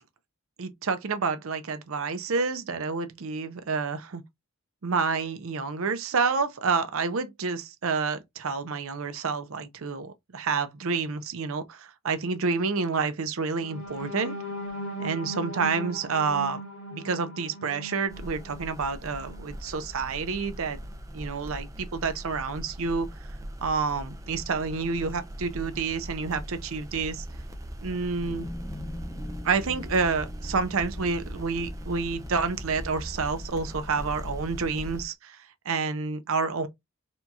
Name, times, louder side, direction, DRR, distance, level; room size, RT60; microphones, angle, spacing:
voice 1, 0.6-4.2 4.8-14.3 15.0-16.6 16.9-20.8 21.1-23.1 23.6-27.3 27.8-28.5 29.4-36.7, right 4 dB, 65° right, 0.6 m, -29 dB
sound 1, 13.6-19.5 20.0-20.2 20.6-20.8, equal, 60° left, 1.0 m, -38 dB
sound 2, 18.1-35.0, equal, 15° right, 0.4 m, -40 dB
sound 3, 28.2-34.8, left 2 dB, 20° left, 0.8 m, -45 dB
4.3 x 2.8 x 2.3 m
head